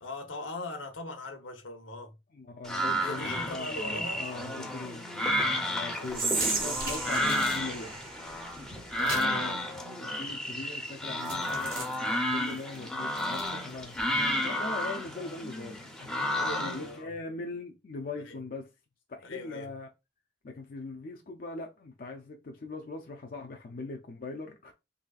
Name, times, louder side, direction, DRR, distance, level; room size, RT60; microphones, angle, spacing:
voice 1, 0.0-2.2 3.0-5.0 5.9-6.2 8.8-9.4 16.3-17.1 18.2-18.4 19.2-19.7, left 2 dB, 85° left, 0.9 m, -41 dB
voice 2, 2.3-8.0 9.0-9.6 9.9-11.9 12.3-14.0 14.4-18.7 19.1-19.9 20.4-24.7, left 3 dB, 50° left, 0.5 m, -41 dB
sound 1, 2.6-16.9, left 1 dB, 5° left, 0.6 m, -32 dB
sound 2, 5.9-7.6 9.0-9.4 11.2-14.3, right 2 dB, 55° right, 1.9 m, -42 dB
Whispering, 6.1-9.3, right 4 dB, 30° right, 0.8 m, -34 dB
4.0 x 3.2 x 2.3 m
head